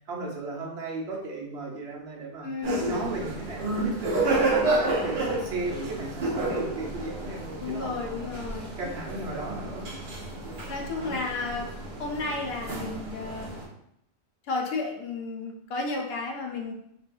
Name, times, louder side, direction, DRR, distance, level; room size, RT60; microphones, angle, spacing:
voice 1, 0.1-2.5 2.8-8.3 8.8-9.9 10.9-11.3, right 3 dB, 75° right, -2 dB, 1.0 m, -36 dB
voice 2, 2.4-3.1 7.6-8.7 10.7-11.7 12.0-13.5 14.5-16.7, left 3 dB, 70° left, 1 dB, 0.8 m, -32 dB
sound 1, 2.6-13.7, right 2 dB, 55° right, 0.8 m, -30 dB
3.3 x 2.5 x 2.2 m, 0.75 s
omnidirectional pair, 1.1 m